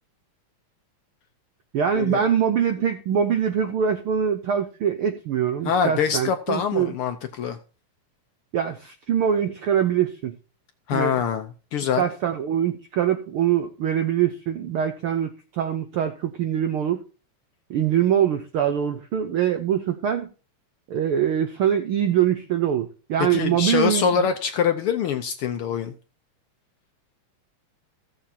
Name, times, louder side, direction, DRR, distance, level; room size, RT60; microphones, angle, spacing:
voice 1, 1.7-6.9 8.5-10.3 10.9-11.2 12.0-17.0 17.7-20.3 20.9-24.2, right 9 dB, 85° right, 7 dB, 1.2 m, -23 dB
voice 2, 5.6-7.6 10.9-11.5 11.7-12.0 23.3-25.9, left 7 dB, 80° left, 7 dB, 1.2 m, -24 dB
16.0 x 7.1 x 2.8 m, 0.34 s
omnidirectional pair, 3.5 m